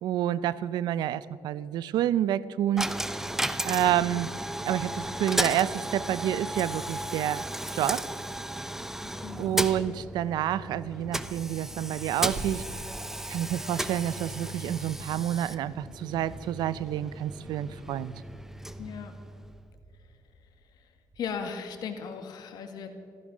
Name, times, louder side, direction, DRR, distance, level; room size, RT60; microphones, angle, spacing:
voice 1, 0.0-2.9 3.6-4.3 4.6-7.4 7.7-8.0 9.4-12.6 13.3-18.1, right 11 dB, 80° right, 18 dB, 0.5 m, -28 dB
Coin (dropping), 2.8-19.7, right 1 dB, 5° right, 0.6 m, -35 dB
voice 2, 9.0-9.6 18.8-19.1 20.8-20.9 21.2-22.9, left 6 dB, 70° left, 7 dB, 1.8 m, -37 dB
Water tap faucet / Sink (filling or washing), 12.2-21.2, right 2 dB, 55° right, 1.9 m, -48 dB
15.0 x 14.0 x 6.2 m, 2.5 s
cardioid pair, 115°, 7 cm